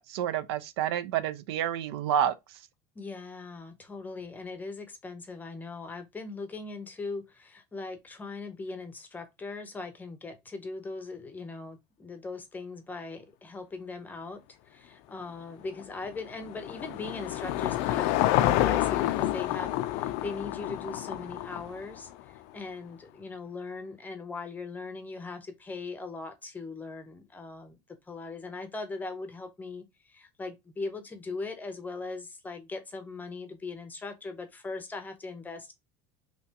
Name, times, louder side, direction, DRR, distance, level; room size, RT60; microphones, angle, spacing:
voice 1, 0.1-2.3, right 10 dB, 85° right, 0.4 m, -29 dB
voice 2, 3.0-27.8 28.1-35.7, left 3 dB, 15° left, 0.7 m, -40 dB
Car passing by / Engine, 15.7-22.2, left 14 dB, 60° left, 0.4 m, -29 dB
3.3 x 2.9 x 2.8 m
supercardioid pair, 135°, 13 cm